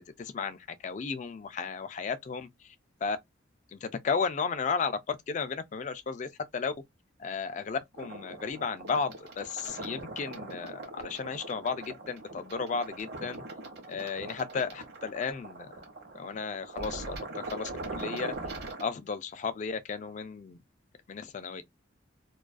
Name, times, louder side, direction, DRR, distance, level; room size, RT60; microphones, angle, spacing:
voice 1, 0.0-2.7 3.0-3.2 3.7-6.7 7.2-13.4 13.9-15.7 16.1-18.3 18.8-20.6 21.1-21.6, left 5 dB, 40° left, 0.3 m, -34 dB
sound 1, 7.9-18.8, right 2 dB, 55° right, 0.8 m, -41 dB
2.3 x 2.3 x 2.3 m
head